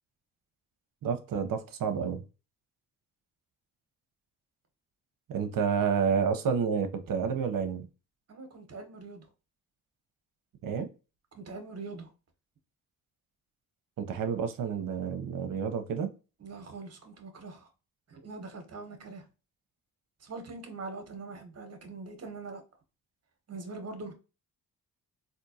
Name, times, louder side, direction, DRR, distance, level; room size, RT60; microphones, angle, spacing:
voice 1, 1.0-2.2 5.3-7.9 10.6-10.9 14.0-16.1, right 6 dB, 65° right, 0.8 m, -29 dB
voice 2, 8.3-9.2 11.3-12.1 16.4-17.7 18.1-19.2 20.2-22.6 23.5-24.1, right 3 dB, 45° right, 1.1 m, -43 dB
3.6 x 2.7 x 2.7 m
supercardioid pair, 60°, 36 cm